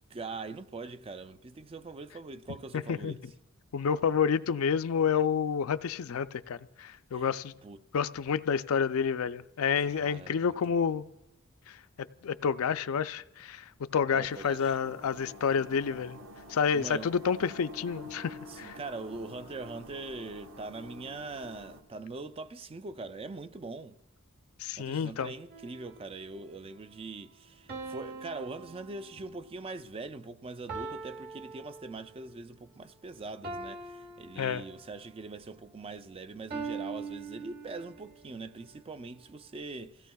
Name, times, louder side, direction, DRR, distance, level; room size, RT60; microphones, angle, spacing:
voice 1, 0.1-3.2 7.1-7.3 7.6-7.8 9.8-10.9 14.1-14.8 16.7-17.1 18.5-24.0 24.8-40.1, right 3 dB, 25° right, 0.4 m, -42 dB
voice 2, 2.7-3.2 3.7-7.5 7.9-11.0 11.7-11.8 12.2-13.6 13.9-16.2 16.5-18.8 24.6-25.3 34.4-34.6, left 6 dB, 70° left, 0.4 m, -29 dB
sound 1, 14.3-21.8, left 1 dB, 65° right, 1.2 m, -48 dB
sound 2, 25.5-26.3 27.7-29.5 30.7-32.3 33.4-35.1 36.5-38.1, right 4 dB, 45° right, 1.3 m, -42 dB
28.0 x 16.5 x 2.3 m
head